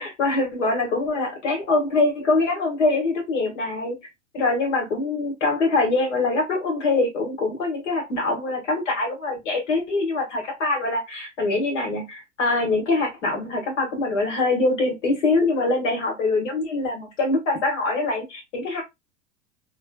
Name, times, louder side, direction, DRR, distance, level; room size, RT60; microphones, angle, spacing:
voice 1, 0.0-4.0 4.3-18.8, left 3 dB, 80° left, 2.0 m, -24 dB
3.4 x 3.4 x 2.3 m
hypercardioid pair, 95°, 37 cm